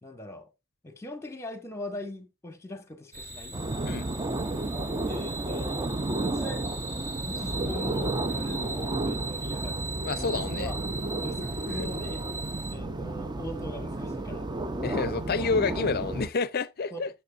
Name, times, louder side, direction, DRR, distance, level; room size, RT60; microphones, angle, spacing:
voice 1, 0.0-0.5 0.8-3.6 5.0-6.6 7.2-9.8 10.2-10.8 11.2-12.2 12.7-14.5 16.9-17.0, left 1 dB, 15° left, 1.3 m, -40 dB
sound 1, 3.1-12.7, right 3 dB, 40° right, 3.6 m, -39 dB
sound 2, 3.5-16.3, right 2 dB, 20° right, 0.5 m, -32 dB
voice 2, 10.0-10.7 11.8-11.9 14.8-17.1, left 4 dB, 45° left, 0.5 m, -29 dB
9.4 x 7.1 x 2.5 m
head